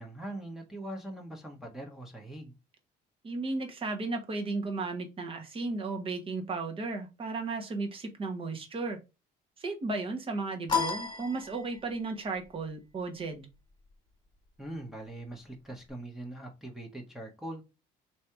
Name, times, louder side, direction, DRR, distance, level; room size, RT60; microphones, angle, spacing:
voice 1, 0.0-2.5 14.6-17.6, right 1 dB, ahead, 1.1 m, -42 dB
voice 2, 3.2-9.0 9.6-13.5, right 3 dB, 35° right, 1.2 m, -34 dB
sound 1, 10.7-12.1, left 5 dB, 25° left, 1.7 m, -32 dB
3.2 x 2.8 x 4.5 m
cardioid pair, 110°, 17 cm